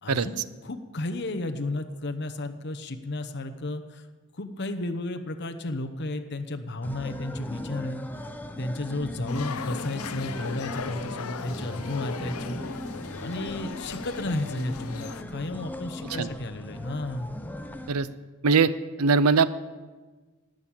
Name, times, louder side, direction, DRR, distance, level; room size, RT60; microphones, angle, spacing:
voice 1, 0.0-4.0 4.4-8.0 8.6-12.6 13.2-17.5, left 2 dB, 50° left, 7 dB, 0.9 m, -33 dB
sound 1, 6.8-17.9, left 1 dB, 10° left, 0.7 m, -39 dB
sound 2, 9.3-15.2, left 5 dB, 75° left, 0.7 m, -38 dB
voice 2, 19.0-19.5, right 4 dB, 80° right, 15 dB, 0.6 m, -21 dB
18.5 x 6.4 x 8.8 m, 1.3 s
head